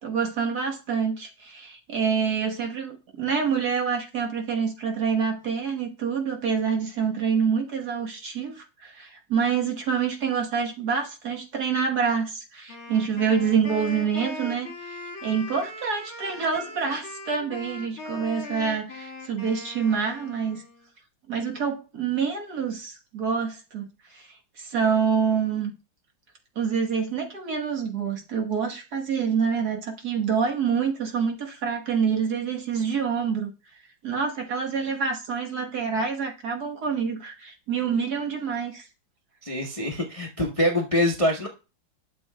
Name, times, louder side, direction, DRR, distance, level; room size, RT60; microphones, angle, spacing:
voice 1, 0.0-20.6 21.3-24.3 24.6-25.7 26.6-33.5 34.0-38.9, right 6 dB, 55° right, 1.7 m, -27 dB
Wind instrument woodwind instrument, 12.7-20.9, left 2 dB, 45° left, 2.4 m, -39 dB
voice 2, 39.4-41.5, left 1 dB, 30° left, 0.6 m, -24 dB
11.5 x 6.9 x 2.3 m
omnidirectional pair, 2.1 m